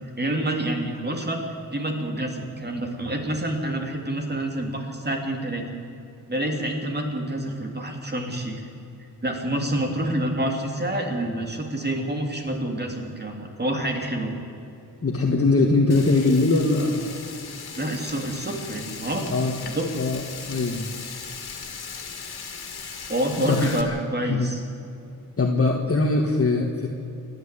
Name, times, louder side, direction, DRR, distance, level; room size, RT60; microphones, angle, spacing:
voice 1, 0.2-1.5 1.7-5.7 6.3-8.6 9.2-14.3 17.7-19.3 19.7-19.9 23.1-24.6, right 1 dB, 25° right, 2 dB, 3.0 m, -27 dB
voice 2, 15.0-17.1 19.3-19.5 19.9-20.2 20.5-20.9 23.4-24.0 24.2-24.5 25.4-26.9, left 3 dB, 40° left, 1 dB, 1.7 m, -21 dB
Frying (food), 15.9-23.8, left 5 dB, 90° left, 2.3 m, -38 dB
28.0 x 11.0 x 8.3 m, 2.7 s
wide cardioid pair, 140°, 37 cm